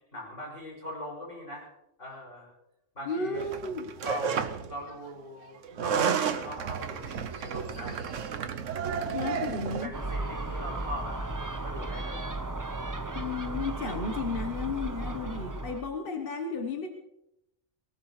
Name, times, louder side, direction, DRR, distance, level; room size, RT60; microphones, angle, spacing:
voice 1, 0.1-1.7 2.0-2.5 3.0-3.5 4.0-8.7 9.1-9.3 9.7-11.3 11.6-12.3, equal, 75° left, -3 dB, 6.9 m, -41 dB
voice 2, 3.0-3.8 9.1-9.9 13.1-16.9, left 4 dB, 50° left, 4 dB, 1.3 m, -33 dB
sound 1, 3.3-4.7 5.6-9.9, right 7 dB, 85° right, 1.2 m, -32 dB
Gull seagull, 9.9-15.8, right 2 dB, 20° right, 0.7 m, -35 dB
23.5 x 18.5 x 3.2 m, 0.85 s
omnidirectional pair, 1.3 m